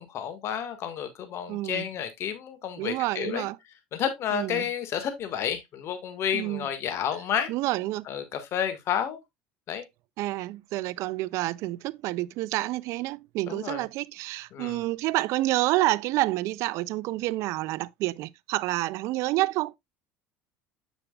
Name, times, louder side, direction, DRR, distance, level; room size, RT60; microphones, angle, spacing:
voice 1, 0.0-3.4 3.9-7.5 8.1-9.2 9.7-9.8 13.5-13.8 14.5-14.8, left 8 dB, 55° left, 1.6 m, -31 dB
voice 2, 1.5-1.9 2.8-3.6 4.3-4.7 6.3-6.7 7.5-8.0 10.2-19.8, right 18 dB, 65° right, 0.4 m, -28 dB
7.2 x 6.7 x 2.3 m
supercardioid pair, 90°, 6 cm